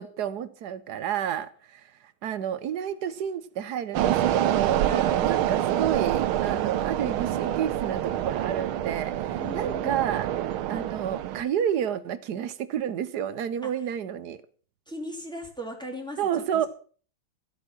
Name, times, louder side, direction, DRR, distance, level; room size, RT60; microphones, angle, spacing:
voice 1, 0.0-10.3 10.7-14.4 16.2-16.7, right 9 dB, 60° right, 1.2 m, -30 dB
sound 1, 3.9-11.4, right 12 dB, 85° right, 1.6 m, -26 dB
voice 2, 4.8-5.3 9.4-10.0 13.6-13.7 14.9-16.7, left 1 dB, ahead, 2.7 m, -38 dB
13.5 x 8.5 x 6.2 m
omnidirectional pair, 2.2 m